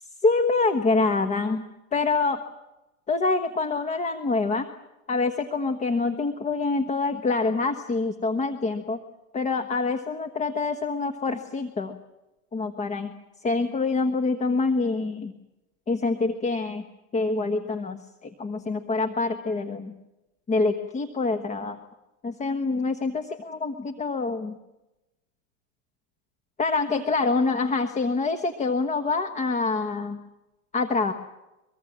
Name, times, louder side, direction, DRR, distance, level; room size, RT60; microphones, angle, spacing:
voice 1, 0.2-1.6 1.9-2.4 3.1-4.7 5.1-9.0 9.3-12.0 12.5-13.1 13.4-15.3 15.9-16.8 17.1-19.9 20.5-21.8 22.2-24.6 26.6-30.2 30.7-31.1, left 3 dB, 15° left, 7 dB, 1.3 m, -26 dB
23.5 x 23.5 x 7.5 m, 0.97 s
supercardioid pair, 140°, 42 cm